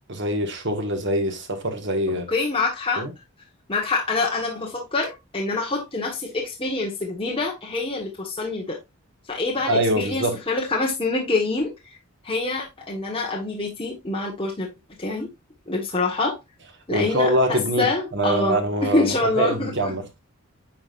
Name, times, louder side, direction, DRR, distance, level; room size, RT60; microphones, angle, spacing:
voice 1, 0.1-2.3 3.0-3.1 9.7-10.3 16.9-17.9 18.1-20.0, right 1 dB, 55° right, 1.7 m, -24 dB
voice 2, 2.3-3.1 3.7-8.8 9.3-12.0 12.2-14.7 15.0-15.3 15.7-16.4 16.9-19.9, left 3 dB, 25° left, 1.4 m, -26 dB
9.1 x 4.9 x 2.5 m
head